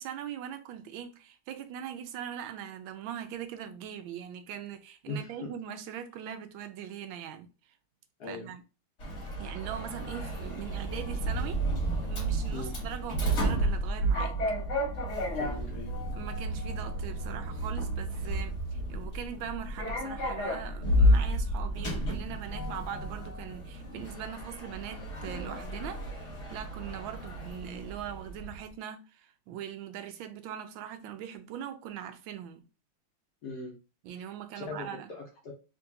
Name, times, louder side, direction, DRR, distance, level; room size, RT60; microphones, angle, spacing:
voice 1, 0.0-7.5 8.3-8.6 9.4-11.6 12.0-14.4 16.1-32.6 34.0-35.1, right 9 dB, 75° right, 1.3 m, -41 dB
voice 2, 5.1-5.5 8.2-8.5 12.5-12.8 15.3-15.9 33.4-33.8 34.5-35.5, left 2 dB, 60° left, 1.1 m, -40 dB
Sliding door, 9.0-28.6, equal, 40° left, 1.2 m, -31 dB
3.9 x 2.7 x 2.6 m
omnidirectional pair, 2.3 m